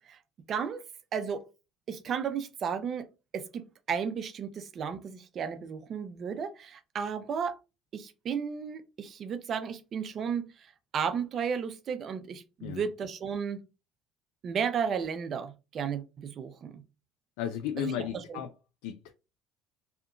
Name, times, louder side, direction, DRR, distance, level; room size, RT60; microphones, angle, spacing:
voice 1, 0.5-0.8 1.1-1.5 1.9-3.1 3.3-7.6 7.9-13.6 14.4-16.8 17.8-18.4, right 7 dB, 45° right, 0.4 m, -34 dB
voice 2, 17.4-18.5 18.8-19.1, left 9 dB, 90° left, 0.3 m, -34 dB
2.8 x 2.2 x 2.5 m
cardioid pair, 110°, 0 cm